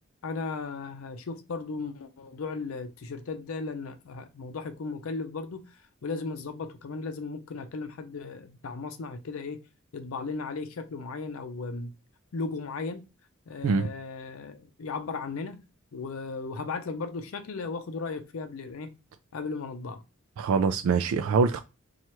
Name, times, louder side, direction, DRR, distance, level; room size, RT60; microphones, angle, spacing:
voice 1, 0.2-9.6 9.9-11.9 12.3-13.1 13.5-15.6 15.9-18.9 19.3-20.0, left 4 dB, 75° left, 0.5 m, -36 dB
voice 2, 20.4-21.6, right 5 dB, 75° right, 0.3 m, -24 dB
2.9 x 2.3 x 4.2 m
head